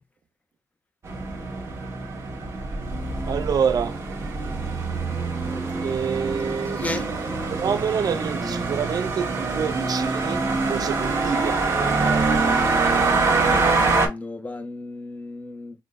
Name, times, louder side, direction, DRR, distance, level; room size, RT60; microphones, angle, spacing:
sound 1, 1.0-14.1, right 3 dB, 35° right, 1.4 m, -24 dB
voice 1, 3.2-4.0 5.8-12.3, right 7 dB, 55° right, 0.5 m, -28 dB
voice 2, 13.4-15.7, left 2 dB, 20° left, 0.6 m, -33 dB
5.8 x 2.2 x 2.5 m
wide cardioid pair, 125°, 8 cm